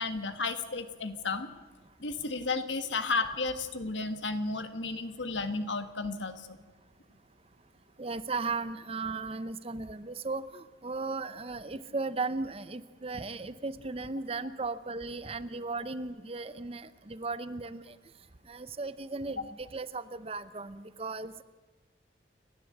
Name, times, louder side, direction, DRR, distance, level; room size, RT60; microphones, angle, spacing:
voice 1, 0.0-1.5 2.0-6.6, left 3 dB, 80° left, 9 dB, 1.5 m, -33 dB
voice 2, 8.0-18.0 18.5-21.4, right 3 dB, 30° right, 14 dB, 0.7 m, -36 dB
29.0 x 11.5 x 7.9 m, 1.3 s
head